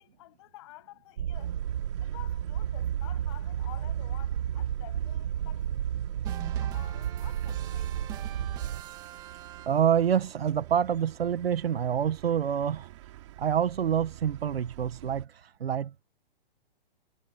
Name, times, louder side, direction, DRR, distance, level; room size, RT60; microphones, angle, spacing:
voice 1, 0.0-1.6 2.0-5.8 6.3-8.1, left 18 dB, 30° left, 7.6 m, -51 dB
sound 1, 1.2-8.8, right 10 dB, 50° right, 6.5 m, -32 dB
sound 2, 1.3-15.3, right 16 dB, 30° right, 3.3 m, -50 dB
sound 3, 6.2-10.1, right 12 dB, 15° right, 2.3 m, -44 dB
voice 2, 9.6-12.9 13.4-16.0, right 9 dB, 85° right, 1.5 m, -27 dB
hypercardioid pair, 175°, 29 cm